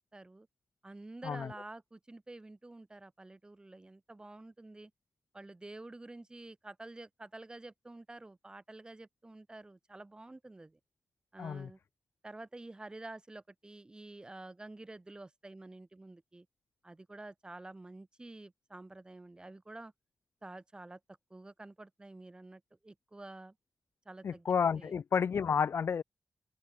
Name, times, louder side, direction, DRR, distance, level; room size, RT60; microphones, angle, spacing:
voice 1, 0.1-0.5 0.8-4.9 5.3-10.8 11.3-11.8 12.2-16.5 16.8-19.9 20.4-21.0 21.3-23.6 24.0-24.5 24.7-24.9, right 2 dB, 20° right, 4.2 m, -49 dB
voice 2, 11.4-11.7 24.2-26.0, left 6 dB, 65° left, 0.7 m, -31 dB
open air
wide cardioid pair, 130°, 4 cm